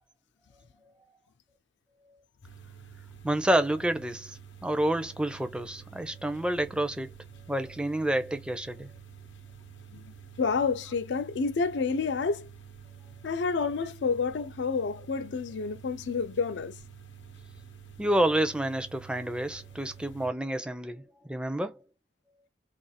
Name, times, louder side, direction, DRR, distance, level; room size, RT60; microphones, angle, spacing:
sound 1, 2.4-20.3, right 7 dB, 90° left, 0.8 m, -49 dB
voice 1, 3.2-7.1 7.5-8.9 18.0-21.8, right 1 dB, 5° right, 0.4 m, -29 dB
voice 2, 10.4-12.5 13.2-16.8, left 5 dB, 70° left, 0.4 m, -29 dB
2.5 x 2.3 x 4.0 m
head